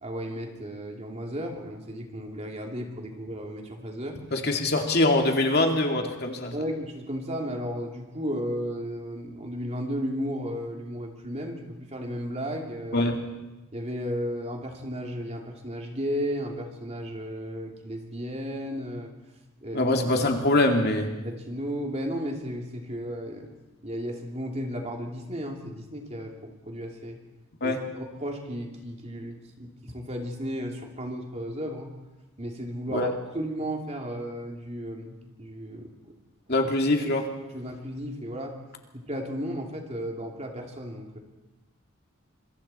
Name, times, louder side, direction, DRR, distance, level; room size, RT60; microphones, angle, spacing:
voice 1, 0.0-4.2 6.5-13.1 13.7-19.1 19.6-19.9 21.2-23.5 23.8-27.2 27.6-31.9 32.4-33.1 33.3-36.1 37.5-38.6 38.9-41.2, equal, 30° right, 1 dB, 2.8 m, -34 dB
voice 2, 4.3-6.5 12.9-13.2 19.7-21.1 27.6-27.8 32.9-33.1 36.5-37.3, left 2 dB, 50° left, 3 dB, 2.3 m, -23 dB
26.5 x 22.5 x 4.3 m, 1.1 s
head